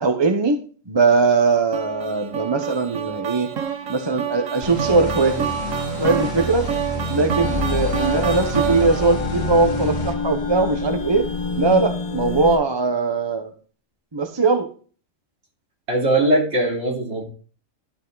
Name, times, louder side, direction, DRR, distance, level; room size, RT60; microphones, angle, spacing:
voice 1, 0.0-3.5 3.9-5.4 5.9-6.7 7.1-11.3 11.6-13.5 14.1-14.7, right 3 dB, 25° right, 6 dB, 0.8 m, -20 dB
sound 1, 1.7-9.2, right 8 dB, 75° right, 1.4 m, -28 dB
sound 2, 4.6-10.1, left 1 dB, 65° left, 2.2 m, -30 dB
sound 3, 7.4-12.6, left 5 dB, 30° left, 0.8 m, -27 dB
voice 2, 15.9-17.2, right 1 dB, 60° right, -2 dB, 3.1 m, -20 dB
12.0 x 5.5 x 3.9 m, 0.40 s
omnidirectional pair, 1.3 m